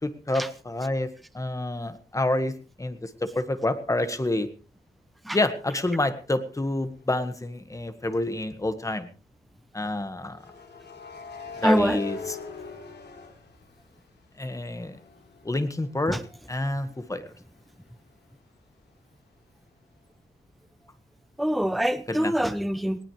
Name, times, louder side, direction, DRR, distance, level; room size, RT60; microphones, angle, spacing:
voice 1, 0.0-4.5 5.3-9.1 9.7-10.4 11.6-12.4 14.4-15.0 15.4-16.2 16.5-17.2 22.1-22.3, left 2 dB, 20° left, 10 dB, 1.6 m, -28 dB
sound 1, 7.0-7.3 10.3-14.2 14.6-18.2, left 5 dB, 85° left, 3.9 m, -42 dB
voice 2, 11.6-12.0 16.1-16.2 21.4-23.0, equal, ahead, 12 dB, 0.8 m, -24 dB
19.5 x 18.5 x 3.3 m, 0.35 s
wide cardioid pair, 120°, 17 cm